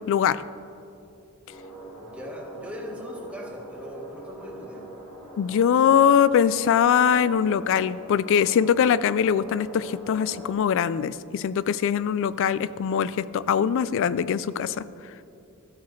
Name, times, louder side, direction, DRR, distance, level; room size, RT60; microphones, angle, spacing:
voice 1, 0.1-0.4 5.4-14.8, left 8 dB, 60° left, 16 dB, 0.3 m, -22 dB
sound 1, 1.5-10.5, equal, 20° left, 2.6 m, -43 dB
voice 2, 2.0-4.9, equal, 5° right, -1 dB, 1.3 m, -39 dB
13.5 x 8.2 x 3.2 m, 2.7 s
head